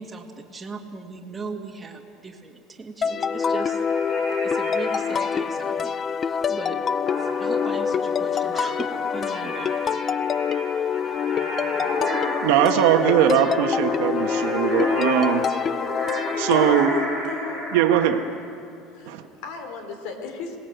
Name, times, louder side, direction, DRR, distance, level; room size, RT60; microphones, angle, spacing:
voice 1, 0.0-3.8 4.4-6.8 7.2-10.0, right 4 dB, 10° right, 2.1 m, -38 dB
sound 1, 3.0-16.7, left 7 dB, 30° left, 0.5 m, -26 dB
sound 2, 3.4-5.4 7.1-18.1, left 1 dB, 45° left, 6.4 m, -32 dB
voice 2, 12.4-15.4 16.4-16.9 17.7-18.2 19.1-19.2, right 11 dB, 85° right, 1.4 m, -20 dB
voice 3, 16.5-17.6 18.9-20.6, left 4 dB, 75° left, 3.8 m, -35 dB
26.5 x 19.0 x 8.1 m
cardioid pair, 145°, 0 cm